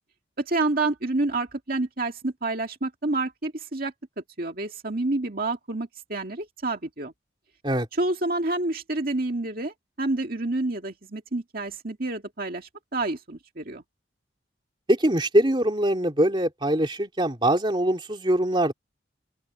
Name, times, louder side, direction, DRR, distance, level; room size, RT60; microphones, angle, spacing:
voice 1, 0.4-3.9 4.4-7.1 8.0-13.8, right 2 dB, 50° right, 2.2 m, -28 dB
voice 2, 14.9-18.7, right 1 dB, 25° right, 2.9 m, -23 dB
open air
head